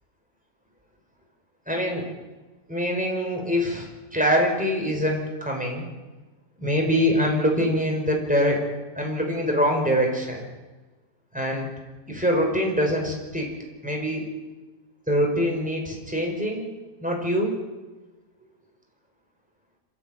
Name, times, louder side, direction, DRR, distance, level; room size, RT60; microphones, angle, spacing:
voice 1, 1.7-2.1 2.7-5.9 6.6-8.6 9.0-10.4 11.3-11.7 12.1-13.5 13.8-14.2 15.1-16.7 17.0-17.5, equal, 5° right, 1 dB, 4.9 m, -24 dB
26.5 x 14.0 x 8.9 m, 1.2 s
omnidirectional pair, 1.8 m